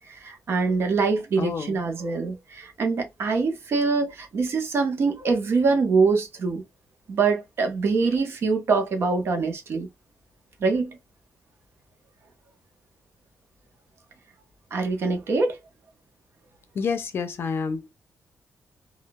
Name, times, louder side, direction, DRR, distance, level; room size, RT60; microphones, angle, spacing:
voice 1, 0.2-6.6 7.1-9.9 10.6-11.0 14.7-15.6, right 4 dB, 55° right, 0.9 m, -24 dB
voice 2, 1.4-1.8 16.8-17.9, left 5 dB, 50° left, 0.6 m, -28 dB
3.6 x 2.3 x 2.3 m
wide cardioid pair, 140°, 5 cm